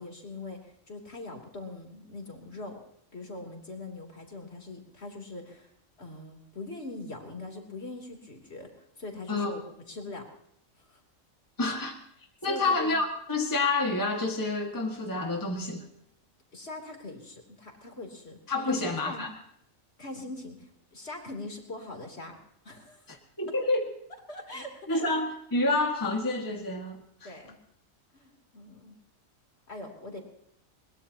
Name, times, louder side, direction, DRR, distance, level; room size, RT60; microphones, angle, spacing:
voice 1, 0.0-2.8 3.1-5.7 6.0-9.6 9.9-10.3 10.8-11.0 12.4-13.0 16.5-18.4 18.7-19.3 20.0-22.4 22.6-23.2 23.5-23.6 24.3-25.1 27.2-27.6 28.1-29.0 29.7-30.2, left 2 dB, 50° left, 2 dB, 3.4 m, -42 dB
voice 2, 11.6-12.0 12.4-15.9 18.5-19.3 23.1-23.9 24.9-27.3, left 2 dB, 15° left, 2 dB, 1.7 m, -28 dB
22.0 x 21.0 x 2.8 m, 0.73 s
omnidirectional pair, 1.4 m